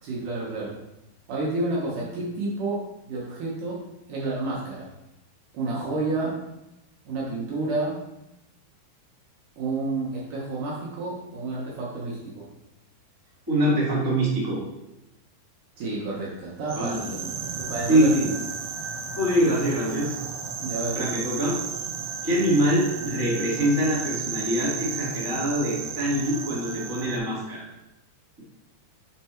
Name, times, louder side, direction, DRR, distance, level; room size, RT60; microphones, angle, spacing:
voice 1, 0.0-0.8 1.3-2.8 3.1-3.8 4.1-4.9 5.5-6.4 7.1-8.0 9.6-12.5 15.8-17.3 17.6-18.4 20.6-21.0, right 2 dB, 65° right, -4 dB, 2.2 m, -30 dB
voice 2, 13.5-14.6 16.7-17.1 17.9-18.2 19.1-20.1 20.9-21.5 22.2-27.6, equal, 15° right, -7 dB, 0.6 m, -24 dB
sound 1, 16.6-27.2, right 6 dB, 90° right, 3.0 m, -34 dB
5.9 x 4.6 x 4.3 m, 0.93 s
omnidirectional pair, 4.7 m